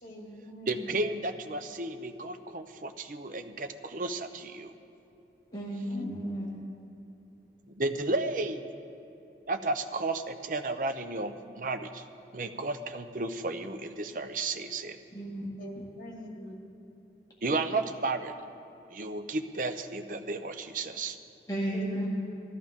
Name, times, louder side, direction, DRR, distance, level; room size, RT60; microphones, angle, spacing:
voice 1, 0.0-0.9 5.5-6.1 15.6-16.5 21.7-22.0, equal, 45° left, -1 dB, 2.3 m, -43 dB
voice 2, 0.7-4.7 7.8-8.6 9.5-12.0 12.3-15.0 17.4-18.3 18.9-21.2, right 2 dB, 45° right, 8 dB, 0.7 m, -33 dB
voice 3, 5.5-6.5 15.1-15.5 15.7-15.8 21.5-22.1, right 1 dB, 20° left, -4 dB, 1.8 m, -33 dB
19.0 x 13.5 x 3.7 m, 2.9 s
head